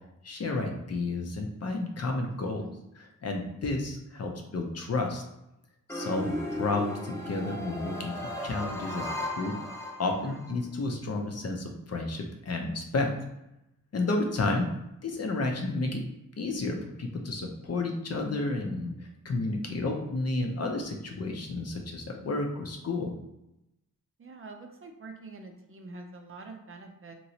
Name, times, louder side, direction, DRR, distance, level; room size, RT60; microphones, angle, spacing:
voice 1, 0.2-2.6 3.0-5.2 5.9-9.6 10.0-13.1 13.9-14.7 15.0-16.0 16.4-18.9 19.2-23.2, left 2 dB, 50° left, 2 dB, 0.6 m, -31 dB
voice 2, 2.4-2.8 10.2-10.4 19.7-20.0 24.2-27.1, right 3 dB, 40° right, 4 dB, 0.5 m, -45 dB
sound 1, 5.9-10.5, left 1 dB, 10° left, 0.6 m, -36 dB
3.0 x 2.9 x 2.7 m, 0.88 s
wide cardioid pair, 85°, 33 cm